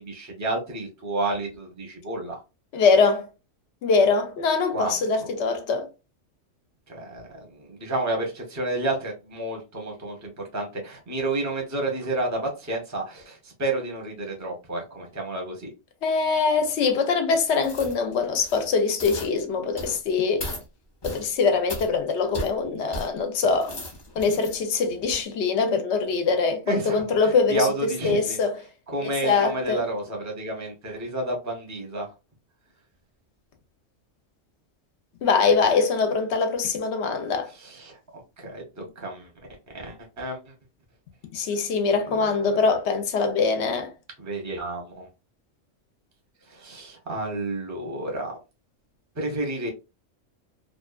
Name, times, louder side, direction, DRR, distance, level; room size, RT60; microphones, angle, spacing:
voice 1, 0.0-2.4 4.7-5.3 6.9-15.7 26.6-28.4 28.9-32.1 37.5-38.0 38.4-39.3 39.7-40.5 41.9-42.8 44.2-45.1 46.5-48.4 49.1-49.7, right 2 dB, 15° right, 0.6 m, -31 dB
voice 2, 2.7-3.3 3.8-5.9 16.0-20.5 21.0-23.7 24.2-28.6 29.2-29.8 35.2-37.5 41.3-43.9, left 4 dB, 65° left, 0.8 m, -23 dB
sound 1, 17.6-18.0 18.4-18.7 19.0-19.3 19.8-20.0 20.4-20.6 21.0-21.3 21.7-21.9 22.3-22.5 22.9-23.1 23.5-24.6 25.0-25.1, left 1 dB, 30° left, 0.5 m, -36 dB
2.6 x 2.2 x 2.3 m
omnidirectional pair, 1.3 m